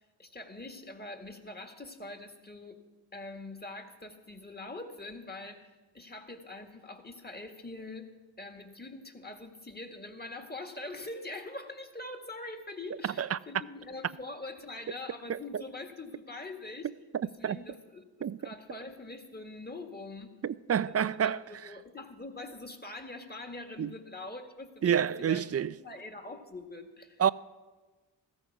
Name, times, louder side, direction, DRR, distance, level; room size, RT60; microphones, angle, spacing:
voice 1, 0.0-2.8 3.1-8.1 8.4-16.9 17.2-20.4 20.9-27.2, left 2 dB, 20° left, 1.8 m, -44 dB
voice 2, 20.4-21.4 23.8-23.9 24.8-25.7 27.2-27.3, right 8 dB, 35° right, 0.4 m, -28 dB
15.0 x 13.5 x 4.7 m
cardioid pair, 45°, 46 cm